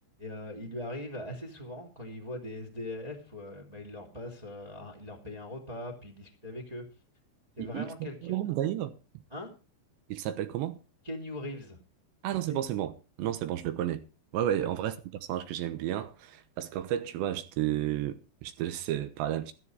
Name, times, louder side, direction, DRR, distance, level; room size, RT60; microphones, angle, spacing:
voice 1, 0.2-6.8 7.6-8.4 9.3-9.5 11.0-11.8 12.5-12.6 14.6-14.7, left 1 dB, 15° right, 1.8 m, -40 dB
voice 2, 7.6-9.0 10.1-10.8 12.2-12.9 13.2-14.0 14.3-19.5, right 12 dB, 80° right, 3.2 m, -32 dB
13.5 x 12.5 x 4.8 m
omnidirectional pair, 5.2 m